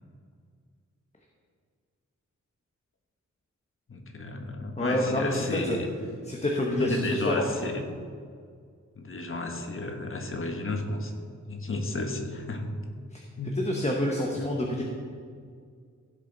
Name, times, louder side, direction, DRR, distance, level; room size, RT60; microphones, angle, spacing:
voice 1, 3.9-5.9 6.8-7.8 9.0-11.1 11.5-12.8 13.4-13.5 14.3-14.5, left 2 dB, 45° left, 4 dB, 1.3 m, -32 dB
voice 2, 4.8-5.8 6.2-7.4 13.1-13.2 13.6-14.8, left 1 dB, 25° left, -1 dB, 1.1 m, -28 dB
16.0 x 7.2 x 4.0 m, 2.1 s
wide cardioid pair, 135°, 29 cm